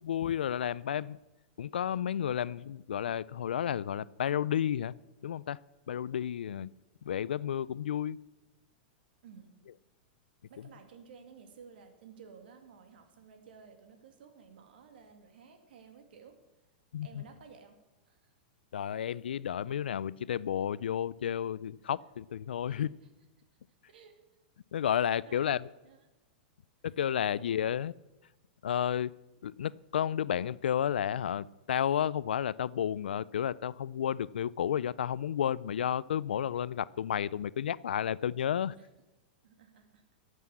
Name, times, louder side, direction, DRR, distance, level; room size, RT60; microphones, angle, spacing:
voice 1, 0.0-1.2 1.6-4.9 5.2-5.6 5.9-6.7 7.0-8.2 16.9-17.2 18.7-22.9 24.7-25.7 26.8-27.9 28.6-29.1 29.4-38.8, left 9 dB, 90° left, 21 dB, 0.4 m, -32 dB
voice 2, 9.2-9.6 10.5-16.4 17.0-17.8 18.1-18.3 22.6-22.9 23.9-24.2 25.0-25.6 25.8-26.1 27.2-27.7 38.8-38.9 39.4-40.0, right 6 dB, 75° right, 5 dB, 2.3 m, -54 dB
14.0 x 8.1 x 7.2 m, 1.1 s
hypercardioid pair, 130°, 5 cm